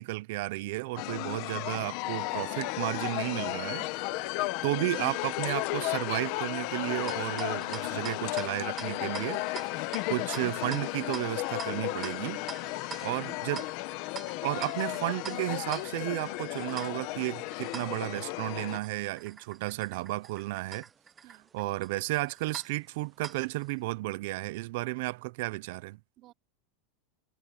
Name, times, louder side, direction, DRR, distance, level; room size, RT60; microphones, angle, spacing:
voice 1, 0.0-4.2 4.6-9.4 10.1-12.4 13.0-13.7 14.4-20.8 21.5-26.0, right 20 dB, 55° right, 0.6 m, -33 dB
sound 1, 1.0-18.8, left 20 dB, 45° left, 1.0 m, -34 dB
sound 2, 6.8-23.7, right 6 dB, 15° right, 0.7 m, -46 dB
voice 2, 12.6-13.2 21.2-21.5 26.2-26.3, right 15 dB, 35° right, 3.2 m, -58 dB
supercardioid pair, 170°, 0 cm